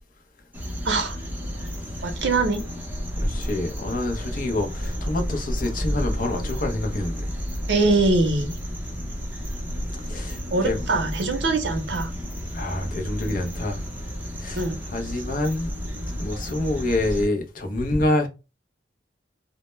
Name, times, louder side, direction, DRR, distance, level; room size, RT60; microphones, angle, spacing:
sound 1, 0.5-17.3, equal, 10° right, 0.6 m, -31 dB
voice 1, 0.8-1.2 2.0-2.6 7.7-8.6 10.5-12.2 14.6-14.8, right 3 dB, 70° right, 0.6 m, -23 dB
voice 2, 3.2-7.2 10.0-10.8 12.5-13.8 14.4-15.7 16.0-18.3, left 1 dB, 50° left, 0.5 m, -27 dB
2.1 x 2.0 x 3.0 m
head